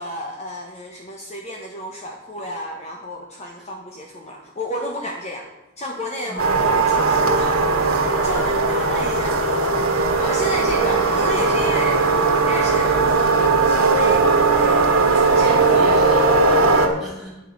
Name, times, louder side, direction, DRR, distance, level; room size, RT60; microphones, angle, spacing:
voice 1, 0.0-5.5 5.8-7.6 8.2-12.1 12.4-15.8, left 1 dB, 30° left, 1 dB, 1.1 m, -31 dB
sound 1, 6.4-16.9, right 3 dB, 80° right, 1.5 m, -18 dB
voice 2, 10.5-10.9 15.2-17.4, right 1 dB, ahead, -3 dB, 3.3 m, -35 dB
9.2 x 5.7 x 8.2 m, 1.0 s
head